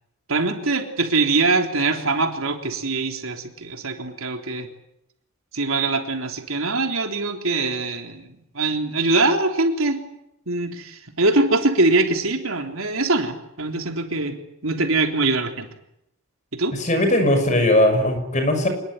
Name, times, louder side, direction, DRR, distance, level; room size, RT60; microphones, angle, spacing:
voice 1, 0.3-4.7 5.5-8.3 8.5-10.0 10.5-14.4 14.6-15.7 16.5-16.8, right 3 dB, 75° right, 4 dB, 3.6 m, -22 dB
voice 2, 16.7-18.7, left 1 dB, 35° left, 7 dB, 6.2 m, -19 dB
26.0 x 21.0 x 9.8 m, 0.80 s
head